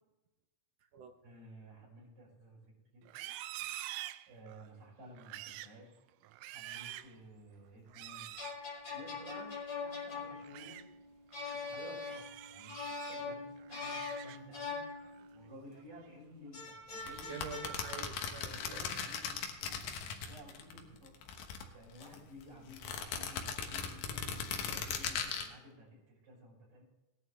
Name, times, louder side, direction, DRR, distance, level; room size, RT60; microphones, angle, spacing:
voice 1, 1.2-3.0 4.3-6.0 6.5-8.3 8.9-10.8 11.5-14.8 15.3-17.6 18.5-21.1 21.7-26.8, equal, 40° right, -6 dB, 6.3 m, -54 dB
Livestock farm animals working animals, 3.0-4.7 5.2-5.8 6.2-7.2 7.9-8.6 10.3-10.8 11.3-11.6 12.0-13.2 13.6-14.6 15.0-15.3 15.8-16.2, right 15 dB, 90° right, 2.2 m, -46 dB
sound 1, 8.1-15.6 16.5-18.0, left 4 dB, 30° left, 2.4 m, -43 dB
sound 2, 17.0-20.8 21.1-22.2 22.7-25.5, left 6 dB, 80° left, 2.9 m, -38 dB
voice 2, 17.3-18.9, right 5 dB, 70° right, 5 dB, 1.6 m, -46 dB
18.5 x 10.5 x 3.2 m, 1.0 s
omnidirectional pair, 3.9 m